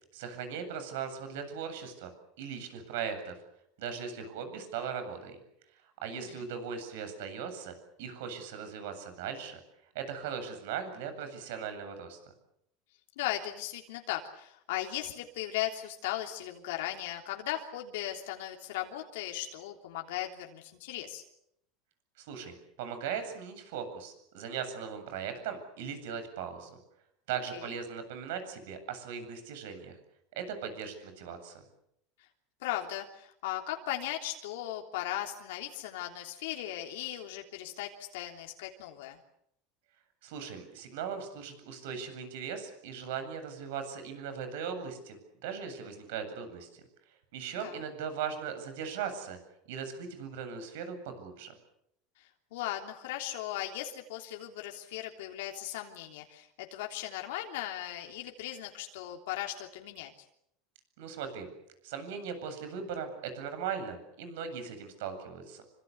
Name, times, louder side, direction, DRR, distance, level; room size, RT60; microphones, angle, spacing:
voice 1, 0.1-2.1 2.4-3.4 3.8-5.4 6.0-9.6 9.9-12.2 22.2-26.8 27.3-30.0 30.3-31.6 40.2-46.8 47.3-49.4 49.7-51.5 61.0-61.5 61.8-65.6, right 7 dB, 80° right, 8 dB, 8.0 m, -39 dB
voice 2, 6.1-6.5 13.2-21.2 27.5-27.7 32.6-39.2 47.6-47.8 52.2-60.1, left 13 dB, 85° left, 2 dB, 3.3 m, -37 dB
27.0 x 25.5 x 7.1 m, 0.76 s
supercardioid pair, 150°, 0 cm